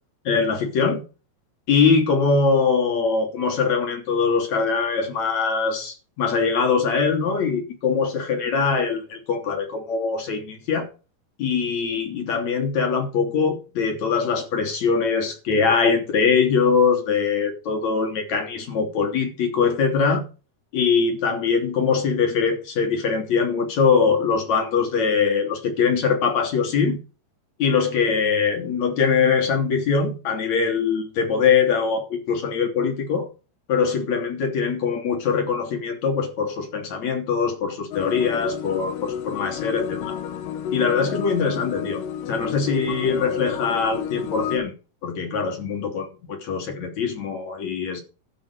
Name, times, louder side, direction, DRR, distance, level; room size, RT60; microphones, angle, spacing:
voice 1, 0.3-1.0 1.7-10.9 11.4-20.2 20.7-27.0 27.6-33.3 33.7-40.2 40.7-44.7 45.0-48.0, left 5 dB, 45° left, 4.1 m, -22 dB
sound 1, 37.9-44.6, left 9 dB, 65° left, 2.5 m, -31 dB
13.5 x 6.2 x 6.6 m
omnidirectional pair, 4.6 m